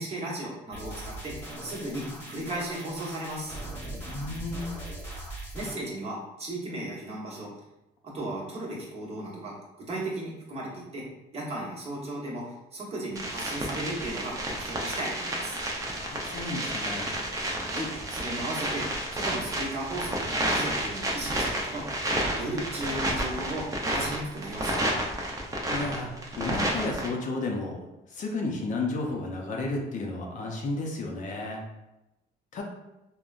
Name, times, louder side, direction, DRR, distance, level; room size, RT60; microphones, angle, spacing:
voice 1, 0.0-3.6 5.5-7.5 8.0-11.0 11.3-15.6 17.7-18.8 19.1-22.0 22.4-24.9, right 1 dB, 35° right, -5 dB, 1.0 m, -35 dB
sound 1, 0.7-5.7, right 1 dB, 15° left, 1.1 m, -40 dB
voice 2, 4.0-4.8 16.0-17.2 25.7-27.8 28.1-31.6 32.5-32.6, left 2 dB, 50° left, 1 dB, 0.6 m, -32 dB
sound 2, 13.2-27.1, right 1 dB, 20° right, 0.6 m, -31 dB
3.6 x 2.1 x 2.4 m, 0.95 s
cardioid pair, 110°, 17 cm